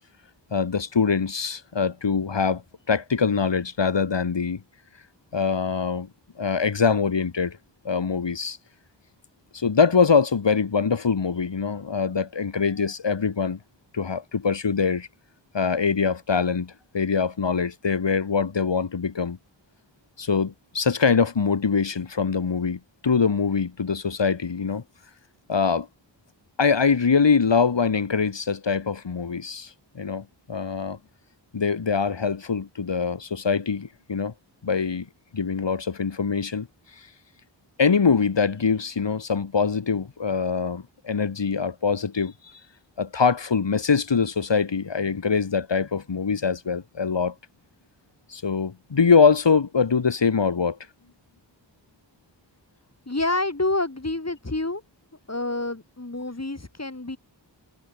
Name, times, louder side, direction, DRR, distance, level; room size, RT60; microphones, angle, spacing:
voice 1, 0.5-2.6 2.9-4.6 5.3-6.1 6.4-7.6 7.8-8.6 9.5-13.6 13.9-15.1 15.5-19.4 20.2-24.8 25.5-25.9 26.6-31.0 31.5-34.3 34.6-35.1 35.3-36.7 37.8-42.3 43.0-47.3 48.3-50.8, left 5 dB, 70° left, 1.8 m, -23 dB
voice 2, 53.1-54.8 55.3-57.2, left 2 dB, 35° left, 6.6 m, -28 dB
wide cardioid pair, 60°, 45 cm